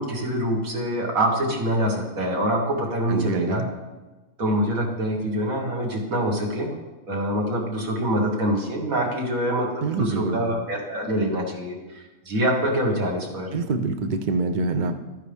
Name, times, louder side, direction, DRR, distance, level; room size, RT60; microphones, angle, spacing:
voice 1, 0.0-3.6 4.4-6.7 7.1-13.5, equal, 90° right, 0 dB, 2.2 m, -25 dB
voice 2, 3.1-3.7 9.8-10.4 13.5-14.9, right 3 dB, 45° right, 7 dB, 0.7 m, -25 dB
11.5 x 9.6 x 3.5 m, 1.2 s
omnidirectional pair, 1.4 m